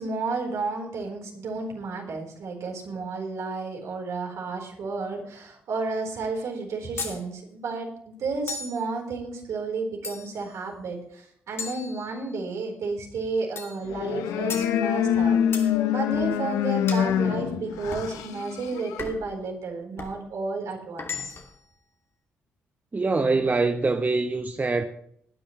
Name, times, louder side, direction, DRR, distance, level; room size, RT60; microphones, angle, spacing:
voice 1, 0.0-21.4, right 3 dB, 65° right, 4.2 m, -32 dB
sound 1, 7.0-7.2 8.5-8.8 10.0-10.5 11.6-12.5 13.6-13.8 14.5-14.7 15.5-15.7 16.9-17.1 17.9-18.1 19.0-19.3 20.0-20.2 21.0-21.6, left 4 dB, 45° left, 2.6 m, -36 dB
sound 2, 13.8-19.1, left 9 dB, 75° left, 1.0 m, -25 dB
voice 2, 22.9-24.8, right 3 dB, 30° right, 1.1 m, -24 dB
18.5 x 10.0 x 3.2 m
hypercardioid pair, 45°, 6 cm